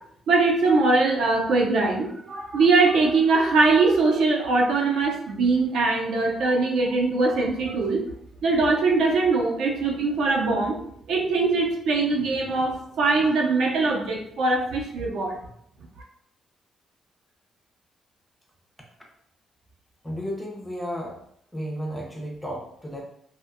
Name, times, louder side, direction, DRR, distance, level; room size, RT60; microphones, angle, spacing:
voice 1, 0.3-8.0 8.4-15.4, right 3 dB, 70° right, 0 dB, 0.5 m, -22 dB
voice 2, 20.0-21.2 21.5-23.0, equal, 5° left, -1 dB, 0.4 m, -33 dB
2.5 x 2.1 x 2.4 m, 0.69 s
cardioid pair, 170°, 0 cm